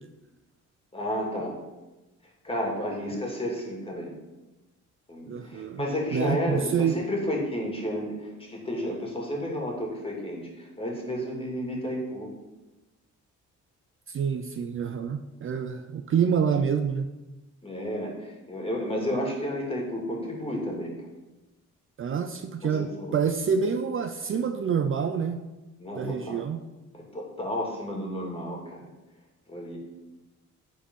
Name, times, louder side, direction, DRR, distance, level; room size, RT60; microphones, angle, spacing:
voice 1, 0.9-1.6 2.4-4.1 5.1-12.3 17.6-21.0 22.6-23.1 25.8-26.4 26.9-28.9 29.5-29.8, equal, 20° left, -1 dB, 2.5 m, -32 dB
voice 2, 5.3-7.0 14.1-17.1 22.0-25.4 25.9-26.6, right 7 dB, 45° right, 7 dB, 0.6 m, -27 dB
8.8 x 4.3 x 5.5 m, 1.1 s
cardioid pair, 90°, 30 cm